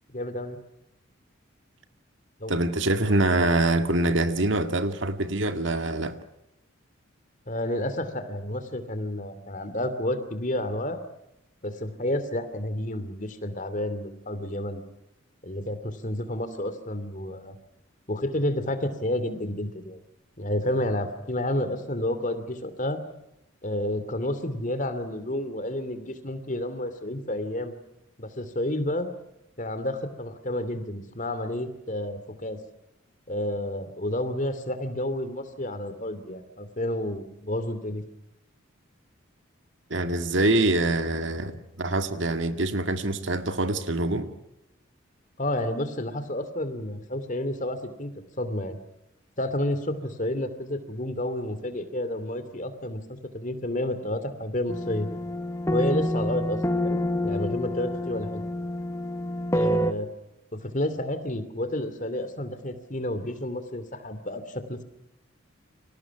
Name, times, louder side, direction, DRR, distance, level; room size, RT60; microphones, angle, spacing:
voice 1, 0.1-0.6 2.4-2.6 7.5-11.0 11.6-14.8 15.4-17.6 18.1-20.0 20.4-23.0 23.6-27.7 28.2-29.1 29.6-32.6 33.3-38.0 45.4-48.1 48.4-48.8 49.4-55.1 55.7-58.4 59.5-60.1 60.5-64.8, left 1 dB, 35° left, 2.6 m, -30 dB
voice 2, 2.5-6.2 39.9-44.3, right 2 dB, 60° right, 1.9 m, -25 dB
sound 1, 54.7-59.9, left 1 dB, 15° left, 1.1 m, -28 dB
30.0 x 25.5 x 6.0 m
head